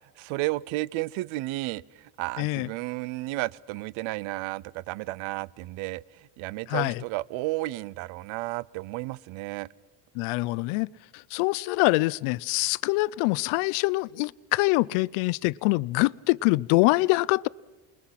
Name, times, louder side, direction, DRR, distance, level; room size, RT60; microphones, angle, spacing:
voice 1, 0.2-1.8 2.2-6.0 6.4-9.7, right 19 dB, 70° right, 23 dB, 0.7 m, -32 dB
voice 2, 2.4-2.7 6.7-7.0 10.1-17.5, left 22 dB, 85° left, 24 dB, 0.6 m, -25 dB
28.0 x 21.5 x 5.8 m, 1.2 s
cardioid pair, 160°, 49 cm